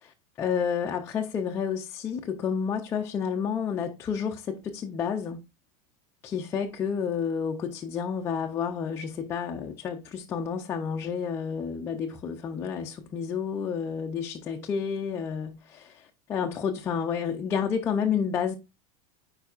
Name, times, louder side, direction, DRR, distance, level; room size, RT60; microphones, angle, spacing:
voice 1, 0.0-5.4 6.2-18.5, left 7 dB, 15° left, 0.4 m, -30 dB
9.3 x 4.6 x 2.4 m
supercardioid pair, 170°, 18 cm